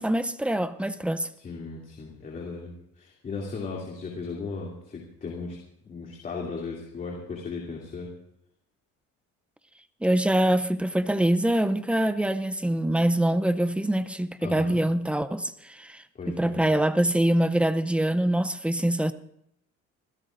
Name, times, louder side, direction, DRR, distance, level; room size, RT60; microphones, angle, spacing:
voice 1, 0.0-1.3 10.0-19.1, right 1 dB, 5° right, 0.5 m, -24 dB
voice 2, 1.4-5.6 5.9-8.1 14.4-14.8 16.1-16.7, left 4 dB, 30° left, 2.7 m, -36 dB
26.5 x 16.0 x 2.5 m
cardioid pair, 150°, 29 cm